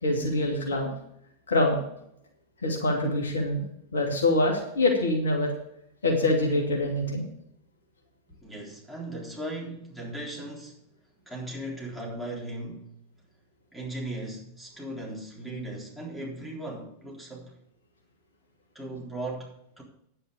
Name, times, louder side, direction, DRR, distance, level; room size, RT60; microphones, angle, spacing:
voice 1, 0.0-0.9 1.5-1.8 2.6-3.6 3.9-5.5 6.0-7.2, left 2 dB, 70° left, 2.7 m, -25 dB
voice 2, 8.4-10.8 11.3-12.9 13.7-17.5 18.7-19.5 19.8-19.9, right 1 dB, ahead, 3.8 m, -37 dB
10.0 x 8.8 x 5.2 m
figure-of-eight pair, 90°, 0 cm